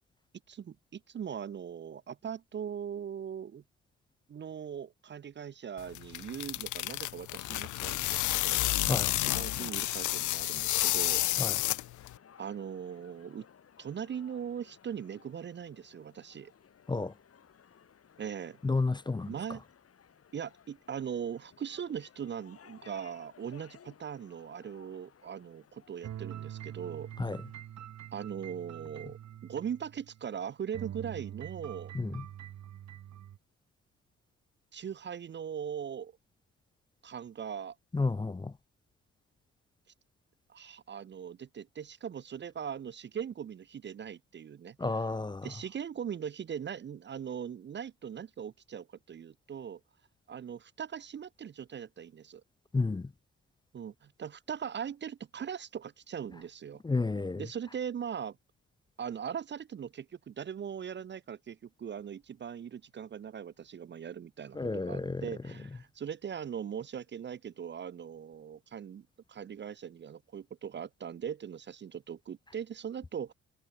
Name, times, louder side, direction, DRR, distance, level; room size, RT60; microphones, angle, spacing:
voice 1, 0.5-3.6 4.3-8.7 9.2-11.5 12.4-13.5 13.8-16.5 18.2-18.6 19.3-19.6 20.3-27.1 28.1-31.9 34.7-36.1 37.0-37.8 40.5-45.0 45.4-49.8 50.3-52.4 53.7-56.8 57.4-58.4 59.0-73.3, right 8 dB, 40° right, 0.6 m, -40 dB
sound 1, 5.8-12.2, left 16 dB, 75° left, 0.6 m, -30 dB
sound 2, 8.3-27.6, left 8 dB, 50° left, 4.2 m, -57 dB
voice 2, 18.6-19.3 27.2-27.4 31.9-32.2 37.9-38.5 44.8-45.5 52.7-53.1 56.8-57.4 64.6-65.3, left 3 dB, 15° left, 0.6 m, -31 dB
sound 3, 26.0-30.4 30.7-33.4, right 11 dB, 65° right, 1.6 m, -45 dB
cardioid pair, 90°, 30 cm